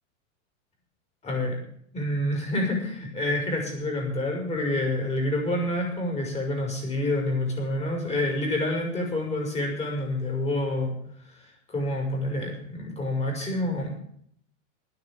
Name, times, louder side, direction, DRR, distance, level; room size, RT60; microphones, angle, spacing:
voice 1, 1.2-1.6 1.9-10.9 11.3-14.0, left 1 dB, 15° left, 0 dB, 5.8 m, -28 dB
11.0 x 9.8 x 9.0 m, 0.66 s
supercardioid pair, 135°, 39 cm